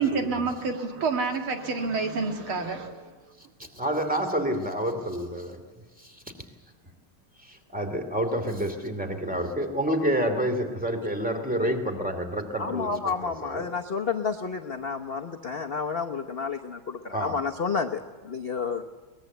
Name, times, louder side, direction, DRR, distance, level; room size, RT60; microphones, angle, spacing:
voice 1, 0.0-3.1, right 4 dB, 75° right, 4 dB, 2.7 m, -28 dB
voice 2, 3.8-5.6 6.0-6.2 7.4-12.9 13.2-13.6 17.1-17.4, equal, 5° right, 6 dB, 2.4 m, -28 dB
voice 3, 12.6-18.8, left 5 dB, 50° left, 3 dB, 0.7 m, -30 dB
22.5 x 20.0 x 8.0 m, 1.3 s
omnidirectional pair, 2.3 m